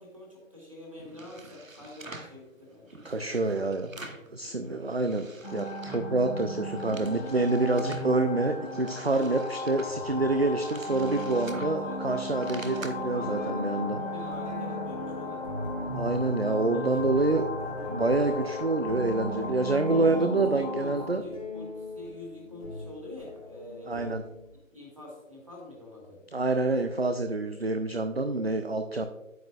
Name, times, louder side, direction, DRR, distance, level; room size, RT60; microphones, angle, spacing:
voice 1, 0.0-3.7 4.1-5.0 9.0-9.5 11.5-12.0 12.6-15.6 16.4-16.6 16.9-17.3 19.9-23.9 24.7-26.6, left 2 dB, 25° right, -2 dB, 1.9 m, -46 dB
sound 1, 1.0-2.4 2.9-4.3 4.6-6.2 6.5-8.1 8.6-12.9, right 2 dB, 80° right, 1.2 m, -47 dB
voice 2, 3.0-3.9 4.3-14.0 15.9-17.4 17.9-21.2 23.9-24.2 26.3-29.1, right 2 dB, 50° right, 7 dB, 0.5 m, -27 dB
sound 2, 5.4-21.1, left 2 dB, 50° left, 1.9 m, -36 dB
sound 3, 12.3-12.4 13.0-24.6, left 2 dB, 25° left, 1.9 m, -40 dB
9.2 x 8.2 x 2.3 m, 0.93 s
figure-of-eight pair, 175°, 40 cm